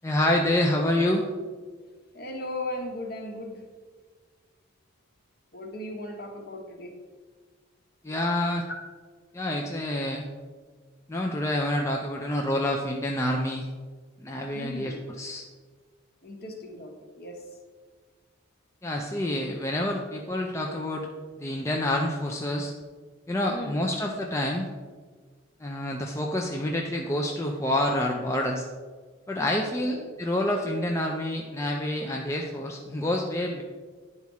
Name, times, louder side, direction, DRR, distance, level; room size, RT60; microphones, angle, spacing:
voice 1, 0.0-1.3 8.0-8.7 9.3-10.3 11.1-13.7 14.2-15.5 18.8-21.1 21.4-22.7 23.3-24.7 25.6-28.6 29.3-33.6, left 1 dB, 15° left, 0 dB, 0.4 m, -27 dB
voice 2, 2.1-3.6 5.5-6.9 14.5-15.0 16.2-17.5 23.5-23.9 29.8-30.0, left 1 dB, 50° left, 2 dB, 1.2 m, -37 dB
10.0 x 4.1 x 4.7 m, 1.5 s
head